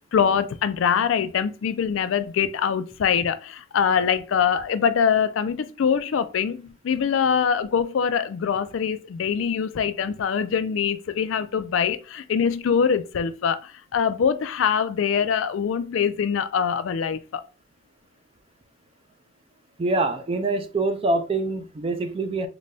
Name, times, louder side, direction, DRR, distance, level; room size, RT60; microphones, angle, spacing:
voice 1, 0.1-17.4, left 7 dB, 70° left, 0.4 m, -23 dB
voice 2, 19.8-22.5, right 2 dB, 30° right, 0.4 m, -25 dB
3.9 x 2.2 x 3.2 m
head